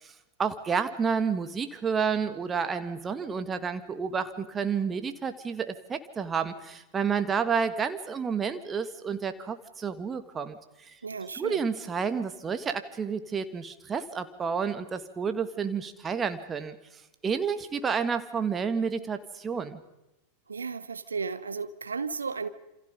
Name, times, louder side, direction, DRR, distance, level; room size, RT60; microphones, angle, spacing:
voice 1, 0.4-11.0 11.4-16.8 17.2-19.8, right 6 dB, 20° right, 10 dB, 1.8 m, -30 dB
voice 2, 11.0-11.6 20.5-22.5, right 5 dB, 75° right, 12 dB, 1.2 m, -34 dB
28.0 x 26.5 x 5.4 m, 0.93 s
figure-of-eight pair, 90°, 0 cm